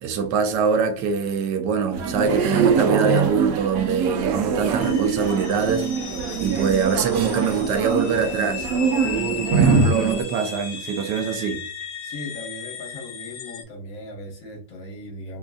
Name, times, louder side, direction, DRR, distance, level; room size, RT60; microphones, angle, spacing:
voice 1, 0.0-5.9 6.4-8.7 9.0-11.6, right 6 dB, 85° right, 1.2 m, -23 dB
sound 1, 1.9-10.2, right 5 dB, 70° right, 1.0 m, -23 dB
sound 2, 4.8-13.6, left 7 dB, 75° left, 1.2 m, -36 dB
voice 2, 12.0-15.4, left 1 dB, 60° left, 1.3 m, -38 dB
3.9 x 2.5 x 2.3 m
omnidirectional pair, 1.8 m